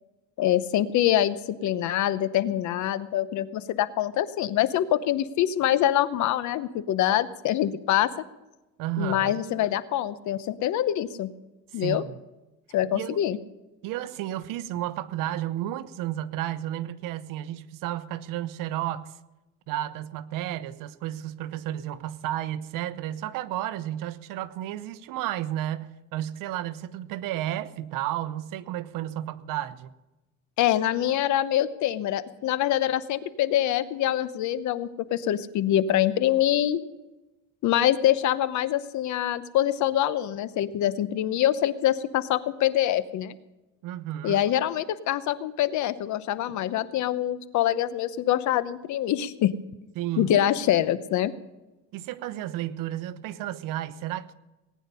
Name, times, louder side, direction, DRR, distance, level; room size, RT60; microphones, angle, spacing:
voice 1, 0.4-1.4 1.6-8.1 9.0-11.3 11.7-12.0 12.7-13.4 30.6-36.8 37.6-43.3 44.2-49.5 50.2-51.3, left 12 dB, 60° left, 0.8 m, -25 dB
voice 2, 8.8-9.4 11.7-12.1 12.8-13.2 13.8-19.1 19.7-29.9 43.8-44.4 50.0-50.3 51.9-54.3, right 13 dB, 75° right, 0.9 m, -32 dB
19.0 x 9.4 x 5.5 m
cardioid pair, 125°, 33 cm